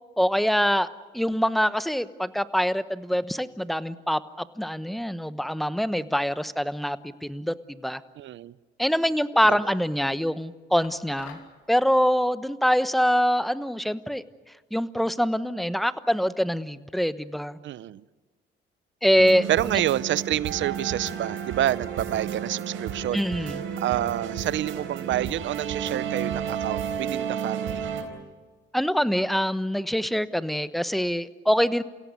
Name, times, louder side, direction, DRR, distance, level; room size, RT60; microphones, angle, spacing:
voice 1, 0.2-0.9 1.1-7.0 7.2-8.0 8.8-11.4 11.7-14.2 14.7-17.6 19.0-19.4 23.1-23.6 28.7-31.8, equal, ahead, 1.0 m, -24 dB
voice 2, 8.2-8.5 9.4-9.6 17.6-18.0 19.5-23.3 23.8-27.9, right 12 dB, 70° right, 0.7 m, -28 dB
sound 1, 10.8-11.6, left 7 dB, 85° left, 3.0 m, -46 dB
sound 2, 19.2-28.0, right 8 dB, 90° right, 4.0 m, -32 dB
29.0 x 17.0 x 9.6 m
cardioid pair, 90°, 20 cm